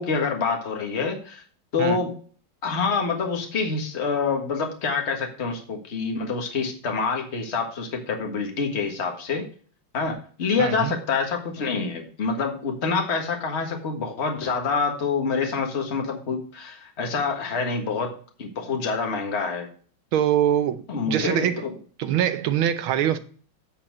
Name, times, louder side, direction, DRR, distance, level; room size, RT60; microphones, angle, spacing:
voice 1, 0.0-1.4 1.7-2.2 2.6-9.5 9.9-19.7 20.9-21.7, left 4 dB, 35° left, 1.6 m, -26 dB
voice 2, 10.6-11.0 20.1-21.6 22.0-23.2, right 10 dB, 90° right, 1.6 m, -23 dB
9.3 x 4.4 x 6.0 m
omnidirectional pair, 2.2 m